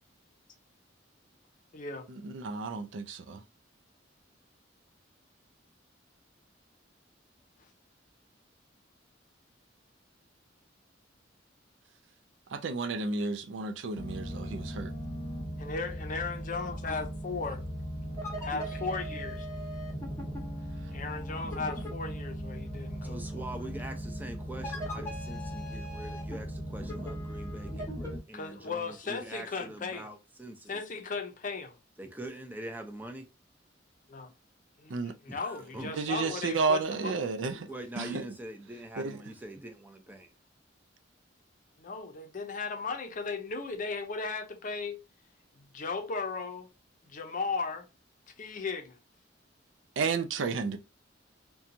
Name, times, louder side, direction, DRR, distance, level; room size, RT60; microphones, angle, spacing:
voice 1, 1.7-2.1 15.6-17.6 18.4-19.5 20.9-23.7 28.3-30.1 30.7-31.8 34.1-34.3 34.8-37.5 41.8-45.0 45.6-46.7 47.0-47.9 48.4-49.0, left 4 dB, 45° left, 0.6 m, -36 dB
voice 2, 2.2-3.4 12.5-14.9 34.9-35.1 35.9-37.7 38.0-38.2 39.0-39.2 50.0-50.8, right 4 dB, 75° right, 0.4 m, -32 dB
sound 1, 14.0-28.2, equal, 15° left, 0.8 m, -38 dB
voice 3, 23.0-30.8 32.0-33.3 35.3-36.0 37.5-40.3, right 1 dB, 10° right, 0.5 m, -43 dB
2.8 x 2.3 x 2.5 m
head